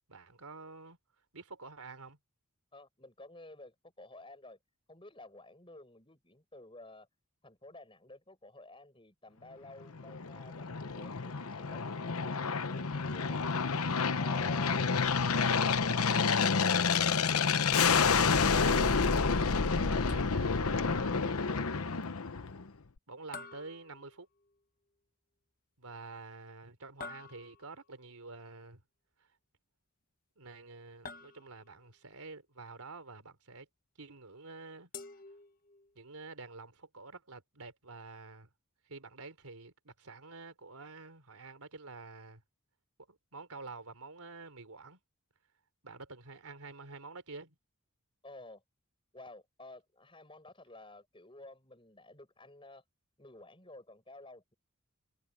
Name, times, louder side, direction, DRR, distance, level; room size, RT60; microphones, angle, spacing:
voice 1, 0.1-1.0 1.3-2.2 17.8-21.9 23.1-24.3 25.8-28.8 30.4-33.7 34.0-34.9 36.0-38.5 38.9-42.4 43.1-45.0 45.8-47.6, right 3 dB, 85° right, 3.9 m, -48 dB
voice 2, 2.7-4.6 4.9-7.1 7.4-13.8 14.1-15.0 48.2-48.6 49.1-52.8 53.2-54.5, left 2 dB, 25° left, 7.5 m, -52 dB
Aircraft, 9.9-22.7, left 5 dB, 80° left, 1.0 m, -29 dB
sound 1, 23.3-24.6 27.0-27.9 31.0-31.9 34.9-36.0, left 4 dB, 40° left, 1.1 m, -49 dB
head